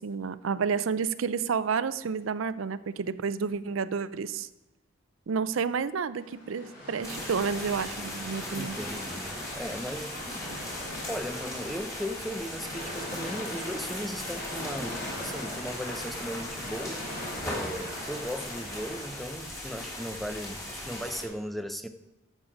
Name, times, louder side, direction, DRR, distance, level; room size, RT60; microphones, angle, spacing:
voice 1, 0.0-4.5 5.3-8.7, right 5 dB, 85° right, 14 dB, 0.5 m, -30 dB
sound 1, 6.1-19.1, equal, 50° left, 4.2 m, -40 dB
sound 2, 7.0-21.2, left 1 dB, 15° left, 3.0 m, -39 dB
voice 2, 8.6-17.0 17.4-21.9, equal, ahead, 8 dB, 0.5 m, -37 dB
12.0 x 7.5 x 5.0 m, 1.0 s
head